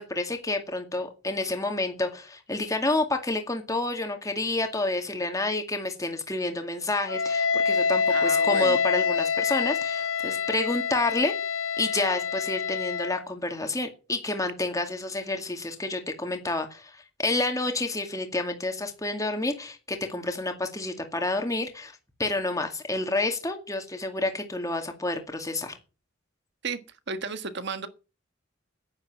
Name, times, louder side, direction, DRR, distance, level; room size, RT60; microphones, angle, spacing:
voice 1, 0.0-11.3 11.8-21.9 22.2-25.8, left 2 dB, 15° left, 2.1 m, -29 dB
Wind instrument woodwind instrument, 7.1-13.2, left 6 dB, 80° left, 0.9 m, -26 dB
voice 2, 8.1-8.8 26.6-26.8 27.1-27.9, right 4 dB, 60° right, 1.5 m, -33 dB
10.0 x 10.0 x 7.4 m
head